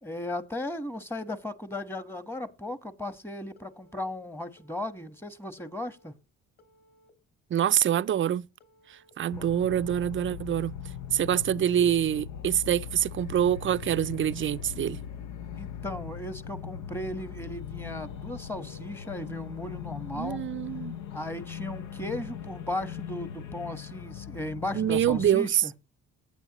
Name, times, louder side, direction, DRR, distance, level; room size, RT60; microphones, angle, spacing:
voice 1, 0.0-6.1 9.4-9.5 15.5-20.4 21.1-25.7, left 1 dB, 5° left, 1.3 m, -36 dB
Telephone, 3.6-4.1 4.6-5.1 5.6-6.1 6.6-7.1 7.6-8.1 8.6-9.1 9.6-10.1 10.6-11.1, left 1 dB, 30° left, 3.4 m, -62 dB
voice 2, 7.5-8.5 9.2-10.8 11.1-15.0 20.1-20.9 24.7-25.7, right 10 dB, 40° right, 0.5 m, -25 dB
sound 1, 9.3-25.3, left 8 dB, 80° left, 0.9 m, -40 dB
14.5 x 9.2 x 3.0 m
cardioid pair, 90°, 30 cm